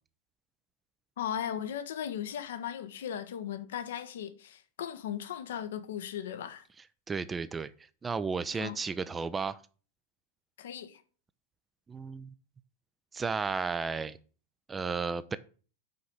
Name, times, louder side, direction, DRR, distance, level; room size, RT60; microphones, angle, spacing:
voice 1, 1.2-6.6 8.5-8.8 10.6-11.0, left 9 dB, 60° left, 0.8 m, -37 dB
voice 2, 7.1-7.7 8.0-9.6 11.9-12.3 13.1-14.2 14.7-15.4, right 5 dB, 15° right, 0.4 m, -33 dB
5.8 x 5.0 x 6.5 m
figure-of-eight pair, 90°, 0 cm